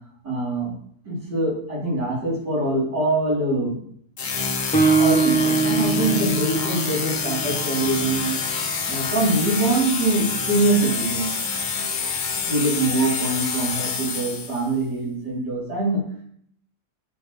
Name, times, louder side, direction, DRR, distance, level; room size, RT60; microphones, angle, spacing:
voice 1, 0.2-0.7 1.1-3.7 5.0-8.4 8.9-11.3 12.5-16.0, right 2 dB, 80° right, -8 dB, 4.5 m, -23 dB
sound 1, 4.2-14.7, left 5 dB, 45° left, 0.6 m, -27 dB
Guitar, 4.7-8.4, right 4 dB, 5° left, 1.2 m, -22 dB
8.5 x 6.1 x 3.4 m, 0.64 s
omnidirectional pair, 1.8 m